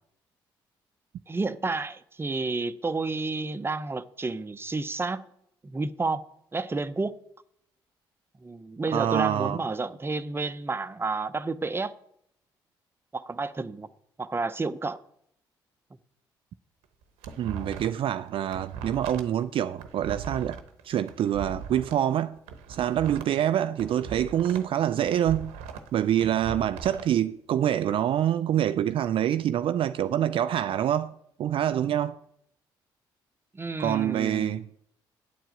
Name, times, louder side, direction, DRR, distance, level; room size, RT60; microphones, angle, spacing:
voice 1, 1.3-5.3 5.6-6.2 6.5-7.2 8.4-11.9 13.1-13.9 14.2-15.0 33.5-34.6, right 3 dB, 20° right, 0.7 m, -30 dB
voice 2, 8.9-9.6 17.4-20.6 20.8-22.4 22.7-25.5 25.9-31.1 31.4-32.2 33.8-34.6, right 10 dB, 60° right, 0.3 m, -26 dB
sound 1, 16.8-18.1 18.4-22.0 22.4-24.7 25.0-27.0, right 5 dB, 85° right, 0.9 m, -40 dB
9.0 x 4.6 x 7.6 m
hypercardioid pair, 55°, 10 cm